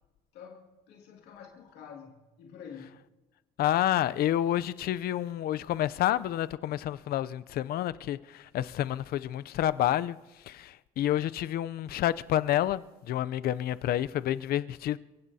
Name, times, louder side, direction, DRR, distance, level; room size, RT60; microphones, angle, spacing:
voice 1, 0.3-3.0, left 7 dB, 90° left, 2.3 m, -48 dB
voice 2, 3.6-10.2 10.5-15.0, left 12 dB, 65° left, 0.5 m, -29 dB
30.0 x 16.5 x 2.8 m
cardioid pair, 110°, 17 cm